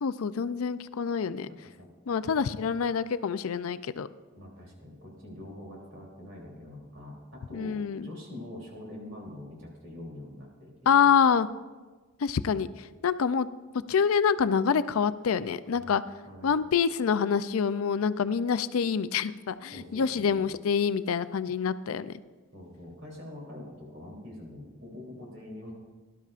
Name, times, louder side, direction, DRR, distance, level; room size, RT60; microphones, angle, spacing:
voice 1, 0.0-1.5 2.1-4.1 7.5-8.1 10.9-11.5 12.2-13.5 13.9-16.0 16.4-22.1, left 6 dB, 85° left, 13 dB, 0.4 m, -26 dB
voice 2, 1.5-1.9 4.3-11.1 15.7-16.0 16.3-16.6 19.7-20.5 22.5-25.7, left 1 dB, 70° right, -2 dB, 3.3 m, -45 dB
19.0 x 12.0 x 2.5 m, 1.3 s
head